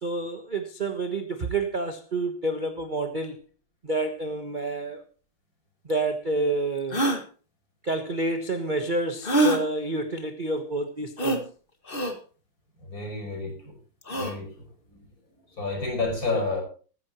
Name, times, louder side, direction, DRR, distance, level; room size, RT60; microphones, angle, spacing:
voice 1, 0.0-3.4 3.8-5.0 5.8-7.0 7.8-11.5 16.3-16.4, right 2 dB, 30° right, 1.1 m, -29 dB
sound 1, 5.9-6.0 6.9-7.2 9.2-9.6 11.2-11.4 11.9-12.1 14.0-14.4, right 2 dB, 25° left, 2.0 m, -24 dB
voice 2, 12.9-13.7 14.1-15.0 15.6-16.6, left 3 dB, 40° left, 6.0 m, -30 dB
15.0 x 14.0 x 3.0 m
omnidirectional pair, 2.3 m